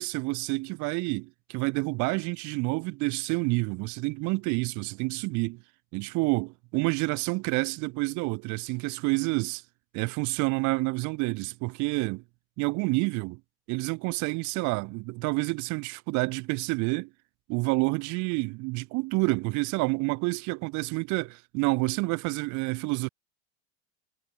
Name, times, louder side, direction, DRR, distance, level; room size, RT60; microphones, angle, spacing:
voice 1, 0.0-5.6 5.9-9.6 9.9-12.2 12.6-13.4 13.7-17.1 17.5-23.1, right 26 dB, 55° right, 0.7 m, -28 dB
hypercardioid pair, 80°, 35 cm